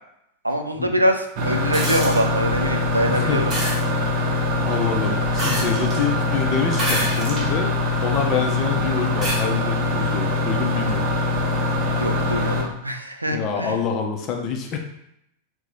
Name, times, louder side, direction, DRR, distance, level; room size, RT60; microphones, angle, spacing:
voice 1, 0.4-3.6 11.9-13.8, equal, 85° right, 5 dB, 0.3 m, -24 dB
sound 1, 1.4-12.6, left 2 dB, 45° right, 0.6 m, -23 dB
sound 2, 1.7-2.2 3.5-3.8 5.4-6.0 6.7-7.5 8.1-8.2 9.2-9.4 10.9-11.0, right 1 dB, 30° right, 1.0 m, -27 dB
voice 2, 3.1-3.5 4.6-7.7 8.0-11.0 13.3-14.8, left 6 dB, 35° left, 3 dB, 0.5 m, -26 dB
2.7 x 2.0 x 3.9 m, 0.79 s
figure-of-eight pair, 90°, 0 cm